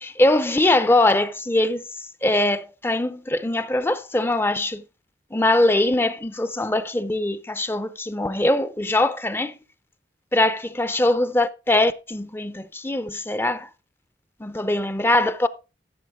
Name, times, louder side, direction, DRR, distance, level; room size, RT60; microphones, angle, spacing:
voice 1, 0.0-4.8 5.3-9.6 10.3-13.7 14.4-15.5, left 1 dB, 15° left, 0.6 m, -22 dB
14.0 x 7.1 x 3.6 m
head